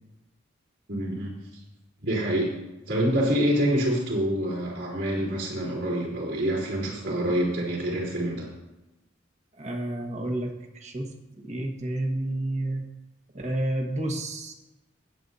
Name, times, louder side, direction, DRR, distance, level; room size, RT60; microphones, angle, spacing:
voice 1, 0.9-1.3 2.0-2.5 2.9-8.5, equal, 65° right, -4 dB, 3.8 m, -26 dB
voice 2, 9.6-11.1 11.4-12.9 13.3-14.5, right 1 dB, 35° right, 2 dB, 1.5 m, -30 dB
20.0 x 7.8 x 2.8 m, 1.0 s
head